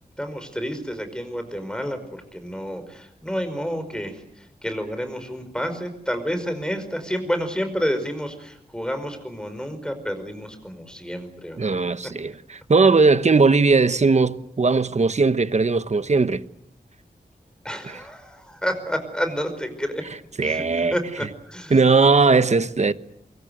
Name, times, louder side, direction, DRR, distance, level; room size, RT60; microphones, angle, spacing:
voice 1, 0.2-11.7 17.6-20.0 20.4-21.7, equal, 5° left, 5.2 m, -30 dB
voice 2, 11.6-16.4 17.8-18.0 20.4-21.0 21.7-22.9, right 4 dB, 45° right, 1.1 m, -18 dB
23.5 x 23.5 x 8.0 m
wide cardioid pair, 80°, 16 cm